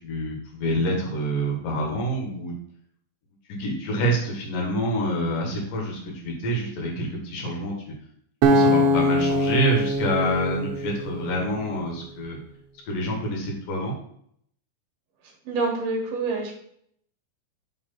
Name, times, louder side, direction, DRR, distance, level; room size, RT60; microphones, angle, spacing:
voice 1, 0.0-2.5 3.5-7.9 8.5-12.4 12.9-13.9, equal, 70° left, 0 dB, 3.3 m, -27 dB
Acoustic guitar, 8.4-11.6, equal, 75° right, 1.9 m, -22 dB
voice 2, 15.4-16.6, right 3 dB, 55° right, 1 dB, 2.4 m, -26 dB
6.3 x 4.4 x 5.8 m, 0.68 s
omnidirectional pair, 4.3 m